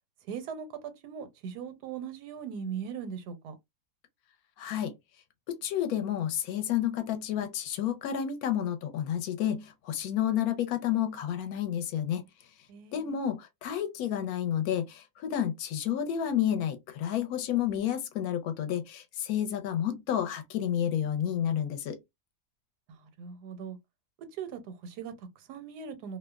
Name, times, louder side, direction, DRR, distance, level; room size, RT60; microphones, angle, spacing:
voice 1, 0.3-3.5 12.7-13.2 22.9-23.8 24.3-26.2, right 7 dB, 90° right, 1.2 m, -40 dB
voice 2, 4.6-4.9 5.5-12.2 12.9-22.0, left 10 dB, 75° left, 1.0 m, -30 dB
2.7 x 2.0 x 2.2 m
omnidirectional pair, 1.7 m